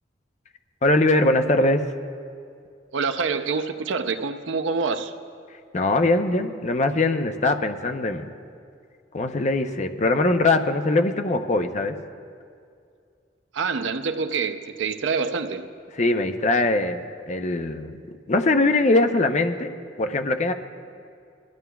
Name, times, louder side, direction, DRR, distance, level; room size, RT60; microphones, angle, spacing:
voice 1, 0.8-1.8 5.7-8.3 9.1-11.9 16.0-18.0 18.3-19.7 20.0-20.5, left 2 dB, 40° left, 6 dB, 0.6 m, -21 dB
voice 2, 2.9-5.2 13.5-15.7, right 5 dB, 90° right, 9 dB, 0.5 m, -26 dB
23.0 x 13.0 x 2.3 m, 2.4 s
head